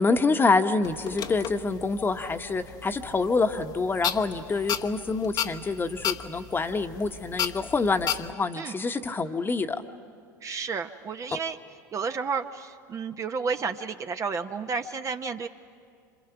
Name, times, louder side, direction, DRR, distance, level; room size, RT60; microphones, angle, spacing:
voice 1, 0.0-9.8 11.3-11.4, left 3 dB, 20° left, 8 dB, 1.2 m, -26 dB
sound 1, 0.8-8.3, left 9 dB, 40° left, 1.0 m, -35 dB
voice 2, 10.4-11.6 11.9-15.5, right 5 dB, 30° right, 7 dB, 0.9 m, -31 dB
27.5 x 27.0 x 6.0 m, 2.3 s
hypercardioid pair, 80°, 10 cm